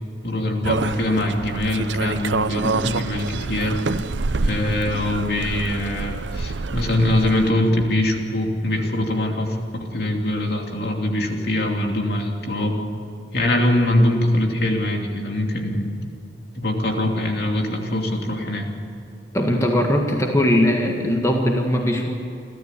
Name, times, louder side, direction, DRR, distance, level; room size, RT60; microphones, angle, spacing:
voice 1, 0.2-3.8 4.4-12.8 13.3-15.9 16.5-18.7, left 1 dB, 60° left, 2 dB, 2.9 m, -23 dB
sound 1, 0.6-7.5, right 3 dB, 85° right, 0.7 m, -27 dB
voice 2, 19.3-22.1, left 1 dB, 15° left, 1 dB, 1.7 m, -20 dB
29.5 x 13.5 x 8.4 m, 2.8 s
head